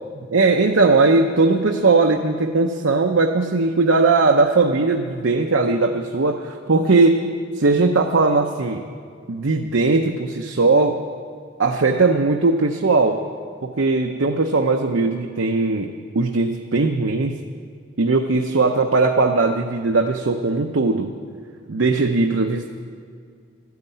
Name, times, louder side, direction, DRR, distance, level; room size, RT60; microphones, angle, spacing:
voice 1, 0.3-7.3 7.6-8.8 9.3-11.0 11.6-13.2 13.6-17.4 18.0-21.1 21.7-22.7, right 3 dB, 80° right, 3 dB, 0.7 m, -19 dB
13.0 x 9.5 x 9.1 m, 2.2 s
head